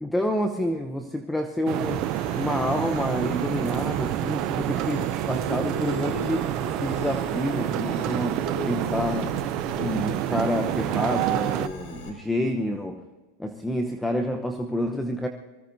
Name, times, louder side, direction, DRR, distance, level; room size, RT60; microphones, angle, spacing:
voice 1, 0.0-6.4 6.8-9.3 9.8-13.0 13.4-15.3, left 1 dB, 5° left, 5 dB, 0.9 m, -28 dB
sound 1, 1.7-11.7, right 15 dB, 45° right, 0.5 m, -28 dB
sound 2, 1.8-12.1, left 3 dB, 55° left, 4.2 m, -38 dB
23.5 x 17.0 x 2.7 m, 1.3 s
supercardioid pair, 140°, 0 cm